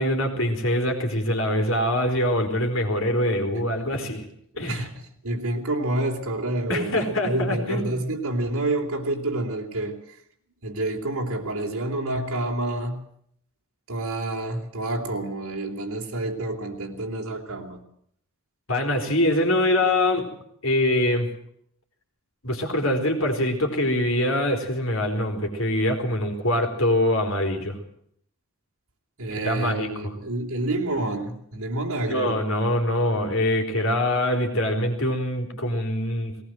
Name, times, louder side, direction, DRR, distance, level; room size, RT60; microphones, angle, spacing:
voice 1, 0.0-4.3 4.6-4.9 6.7-8.1 18.7-20.3 20.6-21.3 22.4-27.8 29.4-29.9 32.1-36.4, left 1 dB, 60° left, 4 dB, 4.0 m, -24 dB
voice 2, 4.7-10.0 10.6-13.0 13.9-17.8 29.2-32.4, right 2 dB, 80° right, 0 dB, 3.5 m, -28 dB
19.5 x 18.5 x 7.7 m, 0.67 s
head